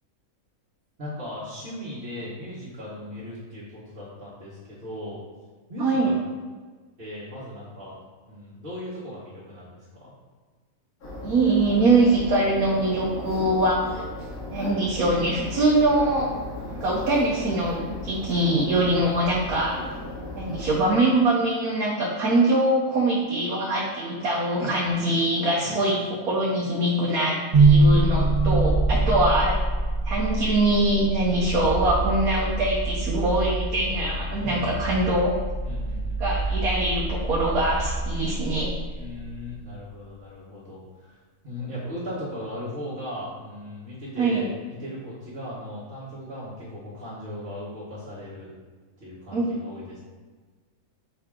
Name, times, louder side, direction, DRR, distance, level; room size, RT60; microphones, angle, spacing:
voice 1, 1.0-5.2 5.7-6.2 7.0-7.9 8.3-10.1 19.0-19.1 25.6-25.8 28.9-29.0 34.4-35.0 35.6-36.4 38.9-41.2 41.4-48.5 49.0-50.0, left 1 dB, 40° right, -10 dB, 1.6 m, -37 dB
voice 2, 5.8-6.1 11.2-14.0 14.5-16.3 16.8-19.7 20.4-29.6 30.0-35.3 36.2-38.7 44.2-44.5 49.3-49.5, right 2 dB, 80° right, -4 dB, 1.3 m, -23 dB
sound 1, 11.0-20.9, left 1 dB, 85° left, 2.4 m, -36 dB
sound 2, 27.5-39.6, right 2 dB, 55° right, 0.4 m, -24 dB
5.5 x 4.7 x 3.7 m, 1.4 s
omnidirectional pair, 1.5 m